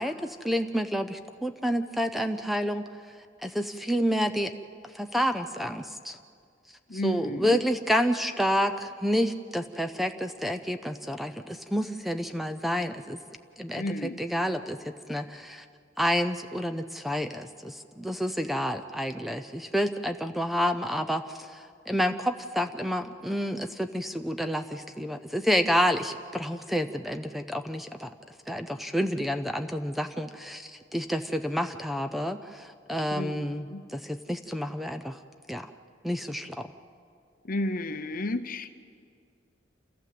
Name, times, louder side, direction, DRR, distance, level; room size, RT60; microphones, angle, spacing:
voice 1, 0.0-2.8 3.4-4.5 4.9-6.2 6.9-13.2 13.6-15.6 16.0-28.1 28.5-35.2 35.5-35.7 36.0-36.7, equal, ahead, 8 dB, 0.5 m, -29 dB
voice 2, 6.9-7.6 13.8-14.2 33.1-33.8 37.4-38.8, left 1 dB, 50° left, 10 dB, 0.9 m, -32 dB
28.0 x 15.0 x 7.7 m, 2.2 s
head